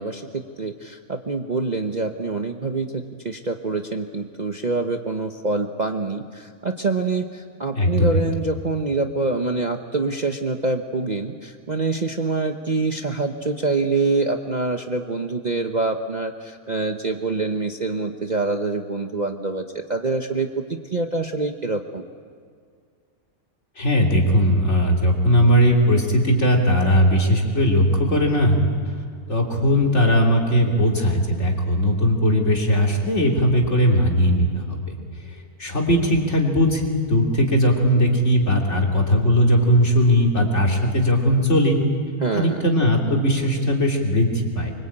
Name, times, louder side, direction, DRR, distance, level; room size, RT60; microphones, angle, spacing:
voice 1, 0.0-19.6 19.9-22.1 42.2-42.6, right 3 dB, 35° right, 4 dB, 1.0 m, -25 dB
voice 2, 7.8-8.2 23.8-28.6 29.3-35.0 35.2-41.8 42.3-44.7, equal, 50° left, 0 dB, 3.6 m, -19 dB
24.5 x 24.0 x 8.8 m, 2.1 s
omnidirectional pair, 1.5 m